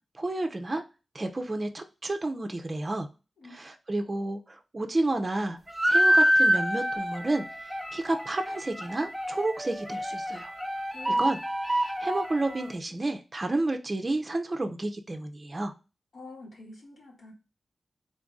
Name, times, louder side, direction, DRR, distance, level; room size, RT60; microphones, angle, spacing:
voice 1, 0.2-0.8 1.1-3.1 3.5-5.6 5.9-7.4 7.9-10.5 11.2-11.4 11.7-15.7, right 2 dB, 30° right, 0.5 m, -30 dB
sound 1, 5.7-12.7, equal, 10° right, 0.8 m, -27 dB
voice 2, 10.9-11.3 16.1-17.3, left 3 dB, 85° left, 2.1 m, -46 dB
3.8 x 2.6 x 3.5 m
wide cardioid pair, 105°, 0 cm